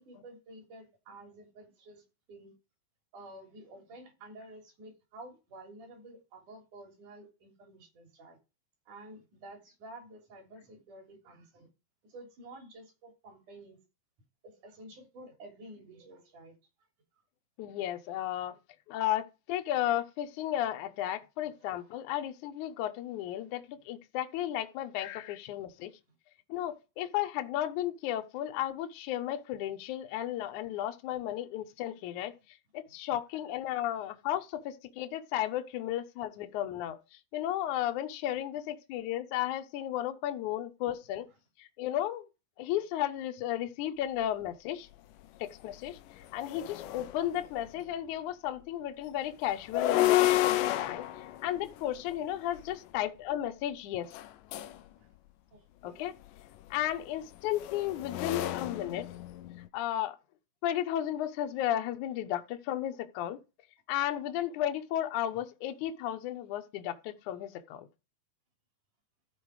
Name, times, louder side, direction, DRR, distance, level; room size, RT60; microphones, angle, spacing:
voice 1, 0.0-2.5 3.1-8.4 8.9-11.7 12.1-13.8 14.4-16.6 21.6-21.7 34.0-34.1 46.2-46.3 55.0-55.1 55.5-56.1 58.6-58.7 65.3-65.4, right 1 dB, 55° right, 4.6 m, -51 dB
voice 2, 17.6-18.5 18.9-25.9 26.5-32.3 32.7-41.3 41.6-42.3 42.6-44.9 45.4-46.0 46.3-54.1 55.8-56.1 56.7-59.1 59.7-60.2 60.6-63.4 63.9-67.9, left 12 dB, 70° left, 2.0 m, -34 dB
sound 1, 45.2-45.3 45.7-47.7 49.5-52.8 54.1-54.8 56.2-59.7, left 14 dB, 90° left, 1.9 m, -31 dB
14.5 x 5.0 x 4.8 m
omnidirectional pair, 4.5 m